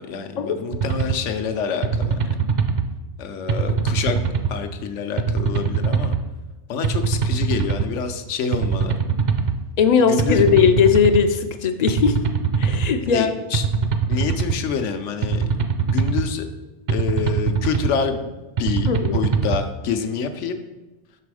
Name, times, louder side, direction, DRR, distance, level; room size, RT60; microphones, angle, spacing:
voice 1, 0.0-2.3 3.2-4.2 4.5-6.1 6.7-9.0 10.1-10.4 13.1-13.6 14.1-15.5 15.8-16.5 16.9-18.3 18.6-20.6, left 6 dB, 85° left, 8 dB, 1.0 m, -27 dB
sound 1, 0.7-1.2 1.8-2.9 3.5-4.5 5.2-6.2 6.8-7.9 8.5-9.6 10.2-11.2 11.9-12.9 13.5-14.6 15.2-16.3 16.9-17.9 18.6-19.6, right 5 dB, 55° right, 0.5 m, -22 dB
voice 2, 9.8-12.2 12.6-13.3 18.9-19.2, left 6 dB, 60° left, 8 dB, 0.4 m, -18 dB
5.9 x 4.9 x 4.8 m, 1.1 s
omnidirectional pair, 1.2 m